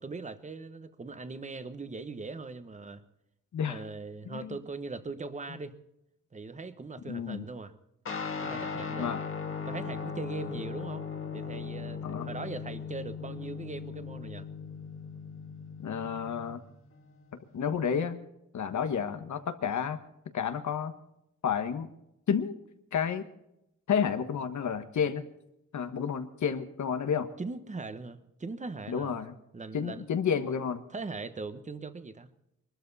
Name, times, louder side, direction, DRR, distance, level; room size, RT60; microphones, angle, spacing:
voice 1, 0.0-3.0 3.7-5.8 6.3-7.7 8.4-9.1 9.6-11.0 11.3-14.5 27.4-29.2 29.5-30.0 30.9-32.3, right 3 dB, 25° right, 11 dB, 1.1 m, -40 dB
voice 2, 7.1-7.4 9.0-9.2 12.0-12.2 15.8-16.6 17.5-18.2 18.5-20.0 20.3-20.9 21.4-21.9 22.3-22.6 22.9-23.3 23.9-25.2 25.7-27.3 28.9-29.3 29.7-30.8, left 7 dB, 75° left, 8 dB, 1.3 m, -30 dB
Guitar, 8.1-17.7, left 5 dB, 45° left, 1.9 m, -38 dB
23.0 x 13.0 x 4.1 m, 0.84 s
wide cardioid pair, 170°, 29 cm